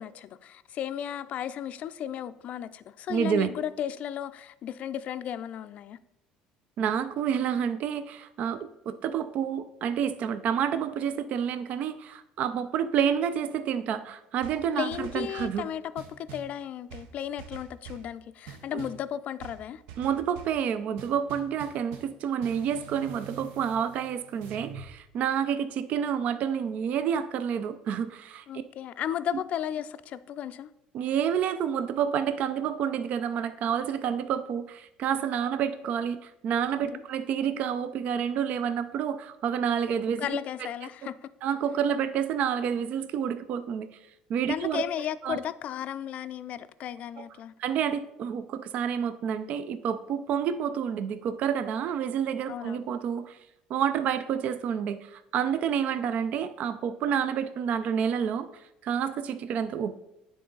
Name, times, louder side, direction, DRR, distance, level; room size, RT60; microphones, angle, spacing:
voice 1, 0.0-6.0 14.7-19.8 28.5-30.7 36.9-37.0 40.2-41.3 44.4-47.5 52.5-52.9, left 10 dB, 50° left, 14 dB, 0.4 m, -35 dB
voice 2, 3.1-3.5 6.8-15.6 18.7-18.9 20.0-28.4 30.9-40.3 41.4-43.9 44.3-44.8 45.2-45.4 47.6-53.4 53.7-60.0, right 8 dB, 55° right, 11 dB, 0.4 m, -29 dB
sound 1, 14.4-15.6 16.0-16.5 16.9-18.1 18.5-19.0 19.4-20.6 21.0-22.2 22.4-24.9, right 7 dB, 80° right, 0.8 m, -45 dB
9.3 x 3.8 x 3.9 m, 0.84 s
cardioid pair, 110°, 3 cm